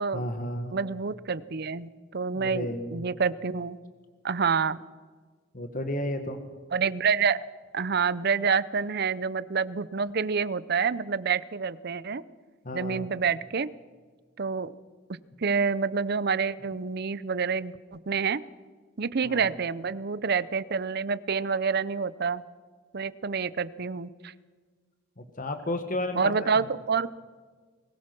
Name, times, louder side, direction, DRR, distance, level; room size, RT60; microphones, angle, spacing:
voice 1, 0.1-0.8 2.3-3.0 5.5-6.4 12.6-13.1 19.2-19.5 25.2-26.5, left 1 dB, 45° left, 7 dB, 1.8 m, -32 dB
voice 2, 0.7-3.8 4.2-4.8 6.7-7.4 7.7-12.2 12.7-13.7 14.4-14.7 15.1-18.4 19.0-22.4 22.9-24.3 26.2-27.1, right 5 dB, 55° right, 17 dB, 0.7 m, -28 dB
22.0 x 19.5 x 6.1 m, 1.5 s
head